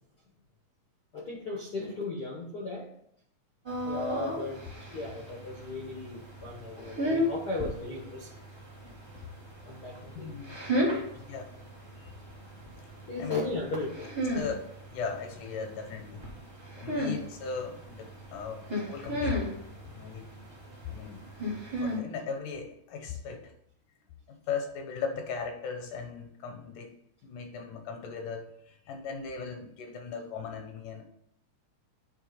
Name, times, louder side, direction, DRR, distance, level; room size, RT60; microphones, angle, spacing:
voice 1, 1.1-2.9 3.8-4.7 4.9-8.3 9.6-10.3 10.7-11.1 13.1-14.1, left 2 dB, 60° left, -3 dB, 1.0 m, -36 dB
sound 1, 3.6-22.0, equal, 35° right, 0.4 m, -35 dB
voice 2, 10.1-10.6 11.3-11.4 12.0-12.1 13.2-13.4 14.3-16.3 16.8-19.6 19.9-20.3 20.8-21.3 21.8-23.5 24.3-27.0 27.2-31.0, left 5 dB, 80° left, 4 dB, 2.6 m, -38 dB
9.3 x 3.4 x 5.0 m, 0.72 s
omnidirectional pair, 3.5 m